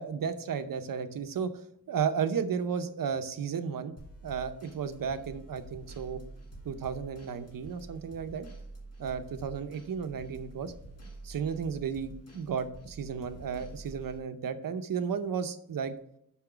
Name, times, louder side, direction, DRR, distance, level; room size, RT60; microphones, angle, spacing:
voice 1, 0.0-1.5 1.9-3.9 4.2-6.2 6.6-8.5 9.0-10.7 11.2-15.9, right 6 dB, 80° right, 9 dB, 0.8 m, -33 dB
sound 1, 4.0-14.2, right 2 dB, 45° left, 1.9 m, -48 dB
6.0 x 5.9 x 5.7 m, 0.72 s
wide cardioid pair, 135°, 33 cm